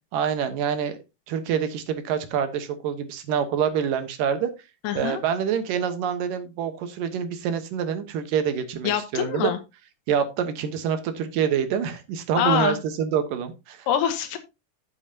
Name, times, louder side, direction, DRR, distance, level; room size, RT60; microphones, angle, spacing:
voice 1, 0.1-1.0 1.3-4.5 4.9-9.5 10.1-13.9, right 8 dB, 75° right, 9 dB, 2.7 m, -26 dB
voice 2, 4.8-5.2 8.8-9.6 12.3-12.8 13.9-14.4, left 9 dB, 80° left, 9 dB, 2.5 m, -24 dB
12.0 x 7.2 x 2.8 m, 0.26 s
omnidirectional pair, 4.0 m